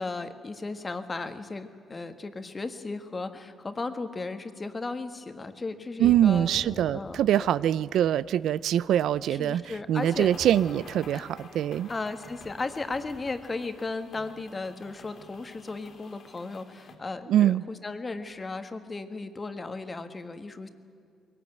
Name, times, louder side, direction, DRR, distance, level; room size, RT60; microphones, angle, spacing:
voice 1, 0.0-6.5 6.9-7.5 9.3-10.3 11.1-11.3 11.9-20.7, left 3 dB, 30° left, 9 dB, 1.7 m, -35 dB
Thunder / Rain, 6.0-16.0, left 1 dB, 10° left, 1.6 m, -49 dB
voice 2, 6.0-9.6 9.9-11.9 17.3-17.6, right 11 dB, 75° right, 18 dB, 0.4 m, -23 dB
sound 1, 10.0-16.9, left 4 dB, 55° left, 3.5 m, -50 dB
21.5 x 18.0 x 9.2 m, 2.4 s
cardioid pair, 90°, 0 cm